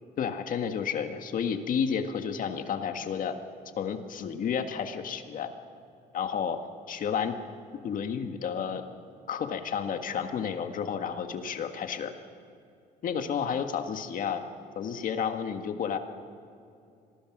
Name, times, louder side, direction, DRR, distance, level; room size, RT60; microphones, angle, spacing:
voice 1, 0.2-3.4 3.8-5.5 6.1-6.6 6.9-7.3 7.8-8.8 9.3-12.1 13.0-14.4 14.7-16.0, left 7 dB, 55° left, 7 dB, 1.7 m, -31 dB
26.0 x 19.5 x 6.1 m, 2.5 s
cardioid pair, 110°, 17 cm